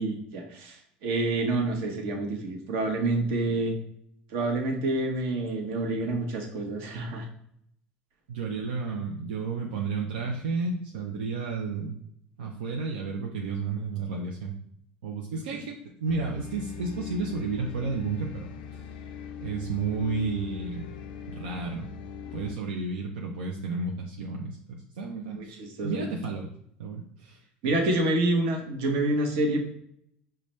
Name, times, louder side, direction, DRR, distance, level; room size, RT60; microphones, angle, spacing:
voice 1, 0.0-3.7 4.3-7.3 25.3-26.1 27.6-29.6, right 2 dB, 65° right, 3 dB, 0.8 m, -28 dB
voice 2, 8.3-12.0 12.4-14.5 15.0-18.5 19.4-21.0 21.3-21.9 22.3-26.5 26.8-27.4, right 4 dB, 90° right, 0 dB, 0.4 m, -32 dB
sound 1, 16.1-22.6, left 7 dB, 85° left, 0.4 m, -40 dB
4.8 x 2.2 x 3.0 m, 0.69 s
hypercardioid pair, 85°, 5 cm